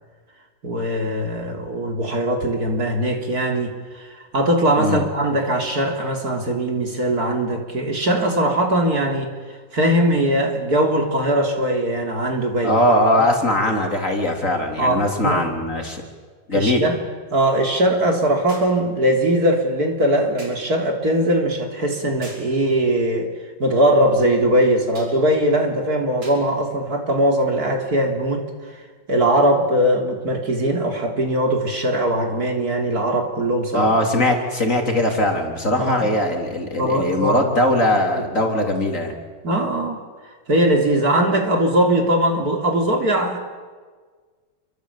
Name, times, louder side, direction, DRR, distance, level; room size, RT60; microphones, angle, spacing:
voice 1, 0.6-9.3 9.7-12.8 14.8-15.4 16.5-17.0 17.3-23.3 23.6-28.5 29.1-33.9 35.8-36.1 36.8-37.8 39.4-40.0 40.5-43.4, right 1 dB, 55° right, 3 dB, 3.8 m, -20 dB
voice 2, 12.6-16.0 16.5-16.9 33.7-39.1, left 1 dB, 45° left, 2 dB, 4.1 m, -20 dB
sound 1, 18.5-18.8 20.4-20.7 22.2-22.6 24.9-25.2 26.2-26.5 27.6-27.7, right 1 dB, 80° right, 6.7 m, -41 dB
28.5 x 24.0 x 8.5 m, 1.5 s
omnidirectional pair, 1.9 m